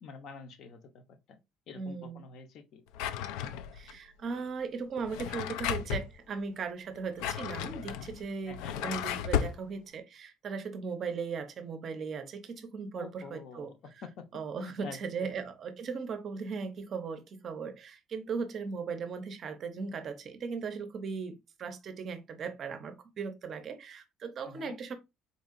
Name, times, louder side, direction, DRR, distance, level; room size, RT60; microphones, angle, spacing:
voice 1, 0.0-1.4 1.7-2.8 8.5-8.8 12.9-15.4 24.4-24.8, left 5 dB, 50° left, 0.6 m, -48 dB
voice 2, 1.7-2.2 3.7-13.7 14.3-24.9, right 5 dB, 35° right, 0.5 m, -38 dB
Drawer open or close, 2.9-3.9 5.0-6.1 6.9-9.6, left 9 dB, 85° left, 0.3 m, -34 dB
4.0 x 2.7 x 2.5 m
cardioid pair, 165°, 0 cm